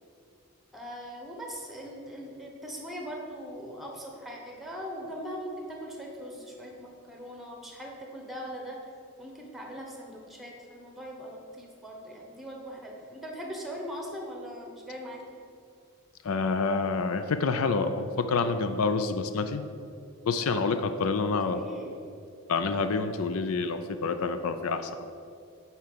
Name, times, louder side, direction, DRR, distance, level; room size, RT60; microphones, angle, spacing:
voice 1, 0.7-8.8 9.2-15.2 21.2-22.0, equal, ahead, 0 dB, 1.2 m, -40 dB
voice 2, 16.2-19.6 20.3-21.6 22.5-25.1, left 4 dB, 80° left, 9 dB, 0.5 m, -28 dB
9.5 x 4.3 x 6.8 m, 2.4 s
head